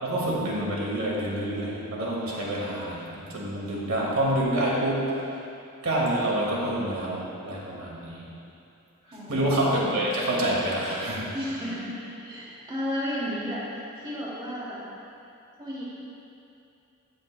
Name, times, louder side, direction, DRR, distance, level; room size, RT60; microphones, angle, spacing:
voice 1, 0.0-5.3 5.8-8.3 9.3-11.3, right 1 dB, 85° right, -4 dB, 2.1 m, -27 dB
voice 2, 9.1-10.0 11.3-13.7 14.0-14.9 15.6-15.8, equal, 25° right, -7 dB, 2.3 m, -33 dB
14.5 x 8.9 x 2.2 m, 2.7 s
head